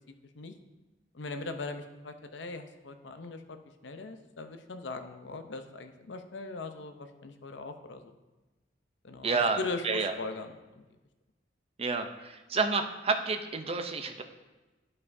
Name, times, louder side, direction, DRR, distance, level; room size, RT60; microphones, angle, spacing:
voice 1, 1.1-8.2 9.0-10.8, left 3 dB, 80° left, 7 dB, 0.7 m, -40 dB
voice 2, 9.2-9.6 9.8-10.1 11.8-14.2, right 4 dB, 35° right, 6 dB, 0.6 m, -29 dB
11.5 x 5.5 x 2.7 m, 1.2 s
head